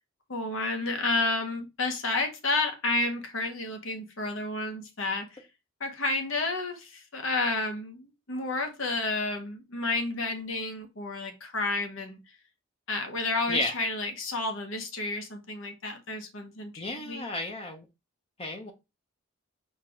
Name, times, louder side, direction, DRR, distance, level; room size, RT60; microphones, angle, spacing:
voice 1, 0.3-5.4 5.8-12.2 12.9-17.3, left 2 dB, 75° left, 1.1 m, -31 dB
voice 2, 16.8-17.9 18.4-18.7, left 2 dB, 30° left, 0.6 m, -32 dB
4.5 x 2.4 x 4.5 m
head